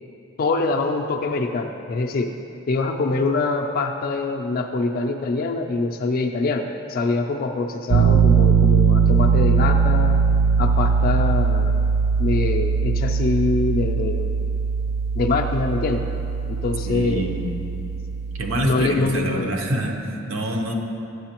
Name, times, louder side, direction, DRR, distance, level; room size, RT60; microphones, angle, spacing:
voice 1, 0.4-2.3 2.7-10.2 10.6-11.8 12.2-14.4 15.2-16.1 16.5-17.3 18.6-19.5, left 3 dB, 45° left, 3 dB, 0.3 m, -24 dB
Piano, 7.9-18.7, right 5 dB, 50° right, 0.3 m, -20 dB
voice 2, 16.8-17.5 18.4-20.7, right 1 dB, 80° right, 2 dB, 0.7 m, -26 dB
8.4 x 7.6 x 2.9 m, 2.8 s
head